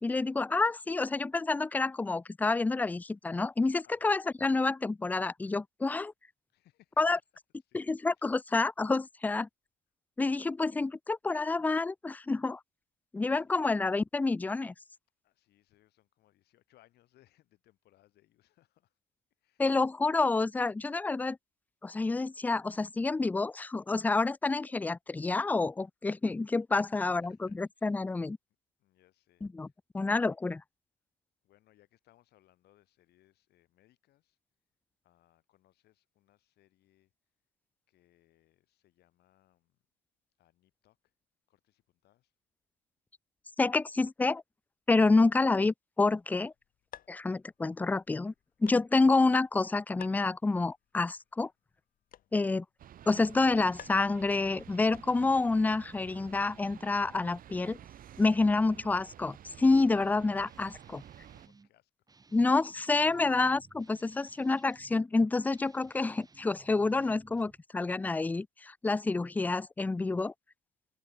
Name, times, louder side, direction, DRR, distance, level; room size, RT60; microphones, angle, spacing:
voice 1, 0.0-6.1 7.0-7.2 7.7-9.5 10.2-12.6 13.1-14.7 19.6-21.4 21.8-27.2 27.6-28.4 29.4-29.7 29.9-30.6 43.6-44.4 44.9-46.5 47.1-48.3 48.6-51.5 52.3-52.6 53.1-57.8 58.2-61.0 62.3-70.3, left 3 dB, 10° left, 0.3 m, -28 dB
voice 2, 3.8-4.1 6.5-7.0 7.7-7.8 8.2-8.4 13.4-13.8 15.2-19.0 19.4-19.7 26.7-28.0 28.8-29.7 30.1-30.4 31.4-34.4 35.0-37.1 37.9-39.8 40.4-41.1 41.5-42.3 52.2-52.4 60.5-60.8 61.3-61.9 63.0-63.2, left 15 dB, 75° left, 5.2 m, -67 dB
sound 1, 46.2-55.5, left 11 dB, 60° left, 3.0 m, -57 dB
sound 2, 52.8-61.5, right 11 dB, 55° right, 2.3 m, -52 dB
Guitar, 60.4-61.7 62.1-65.0 65.5-67.6, right 4 dB, 20° right, 5.5 m, -60 dB
cardioid pair, 110°, 17 cm